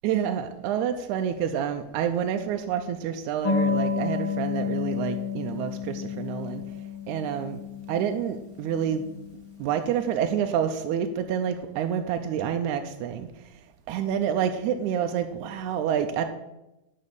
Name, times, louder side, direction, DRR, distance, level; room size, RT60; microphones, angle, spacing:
voice 1, 0.0-6.6 7.1-7.6 7.9-9.0 9.6-13.3 13.9-16.3, right 8 dB, 80° right, 6 dB, 1.9 m, -28 dB
sound 1, 3.4-9.6, left 6 dB, 40° left, 2.5 m, -31 dB
12.0 x 4.1 x 6.9 m, 0.95 s
omnidirectional pair, 3.8 m